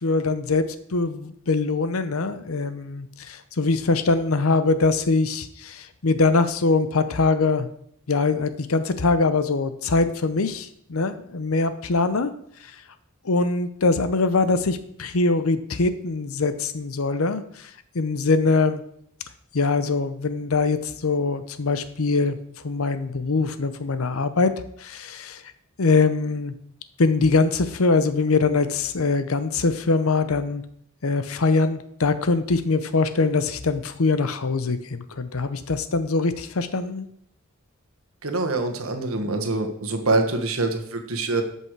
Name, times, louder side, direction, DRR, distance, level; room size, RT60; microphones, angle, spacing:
voice 1, 0.0-0.6 0.9-7.7 8.1-12.3 13.2-18.8 19.5-22.4 22.6-24.5 24.8-25.4 25.8-26.5 27.0-30.6 31.0-37.1, left 3 dB, 80° left, 11 dB, 0.8 m, -23 dB
voice 2, 38.2-41.4, right 3 dB, 75° right, 6 dB, 1.4 m, -25 dB
13.0 x 5.6 x 4.7 m, 0.68 s
head